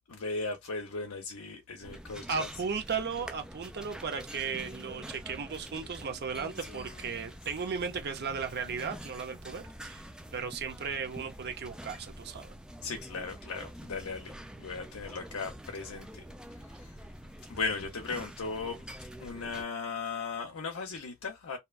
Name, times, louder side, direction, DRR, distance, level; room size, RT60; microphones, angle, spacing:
voice 1, 0.1-2.5 12.8-16.2 16.6-16.9 17.5-18.8 19.2-21.6, left 4 dB, 70° left, 0.6 m, -37 dB
sound 1, 1.8-19.6, equal, 5° right, 0.3 m, -46 dB
voice 2, 2.3-10.0 10.3-12.5, right 5 dB, 50° right, 0.6 m, -36 dB
Female speech woman speaking, 4.4-5.1 6.2-7.7 8.2-9.1, right 1 dB, 35° left, 0.8 m, -50 dB
2.8 x 2.2 x 2.3 m
head